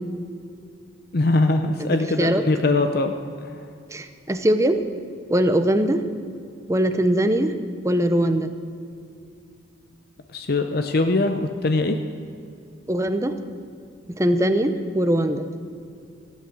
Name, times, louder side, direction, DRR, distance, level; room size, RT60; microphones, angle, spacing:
voice 1, 1.1-3.1 10.3-12.0, left 2 dB, 50° left, 7 dB, 0.7 m, -21 dB
voice 2, 3.9-4.8 5.3-6.0 6.7-7.5 7.8-8.5 12.9-13.3 14.2-15.5, right 1 dB, 15° right, 9 dB, 0.7 m, -21 dB
16.5 x 8.8 x 7.7 m, 2.5 s
head